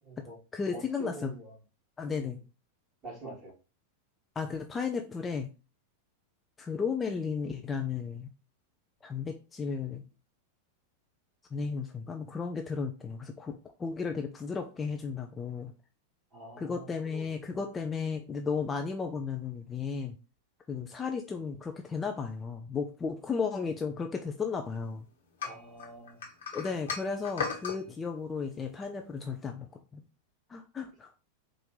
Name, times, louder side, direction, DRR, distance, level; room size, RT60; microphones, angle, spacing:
voice 1, 0.0-0.4 0.7-1.5 2.1-2.3 3.0-3.5 16.3-17.6 25.4-26.2, right 2 dB, 30° right, -3 dB, 2.4 m, -46 dB
voice 2, 0.5-1.3 2.0-2.4 4.4-5.5 6.6-8.3 9.0-10.0 11.5-15.7 16.6-20.2 20.7-25.1 26.5-30.0 30.5-31.1, left 5 dB, 15° left, 3 dB, 0.5 m, -34 dB
sound 1, 25.4-27.8, left 6 dB, 65° left, 1.2 m, -36 dB
4.4 x 2.5 x 3.8 m, 0.33 s
figure-of-eight pair, 90°, 0 cm